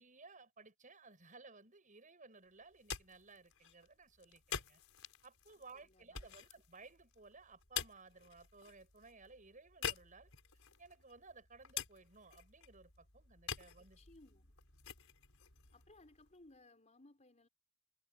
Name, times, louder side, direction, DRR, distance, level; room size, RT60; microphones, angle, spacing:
voice 1, 0.0-4.8 5.2-10.3 10.8-14.0, right 3 dB, 40° right, 6.6 m, -58 dB
sound 1, 2.6-16.6, left 8 dB, 80° left, 5.2 m, -48 dB
voice 2, 5.7-6.3 13.8-14.5 15.7-17.5, left 2 dB, 35° left, 4.8 m, -63 dB
head